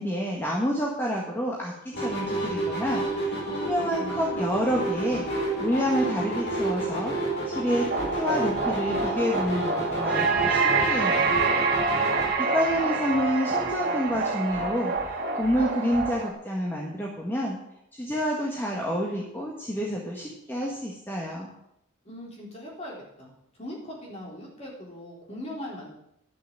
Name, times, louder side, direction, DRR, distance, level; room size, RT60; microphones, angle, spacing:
voice 1, 0.0-11.4 12.4-17.6 17.9-21.5, equal, 10° left, -3 dB, 1.5 m, -29 dB
sound 1, 1.9-12.3, right 1 dB, 55° left, 5.1 m, -30 dB
voice 2, 3.8-4.2 12.1-12.2 12.4-12.8 22.0-25.9, left 1 dB, 30° left, -3 dB, 4.0 m, -40 dB
sound 2, 7.9-16.3, right 4 dB, 50° right, 1.9 m, -26 dB
11.5 x 7.1 x 7.5 m, 0.80 s
head